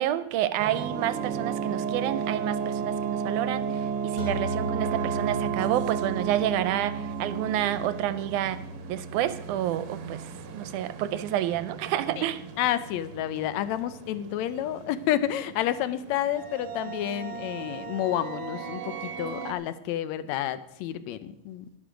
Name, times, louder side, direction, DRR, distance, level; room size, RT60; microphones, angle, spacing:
voice 1, 0.0-8.6 8.9-10.2 10.5-12.4, right 12 dB, 85° right, 13 dB, 2.1 m, -29 dB
sound 1, 0.6-19.5, right 7 dB, 60° right, 1.6 m, -34 dB
sound 2, 4.2-14.6, left 1 dB, 35° left, 2.0 m, -40 dB
voice 2, 12.6-21.7, left 11 dB, 75° left, 13 dB, 1.8 m, -30 dB
11.5 x 11.5 x 5.1 m, 0.84 s
omnidirectional pair, 3.6 m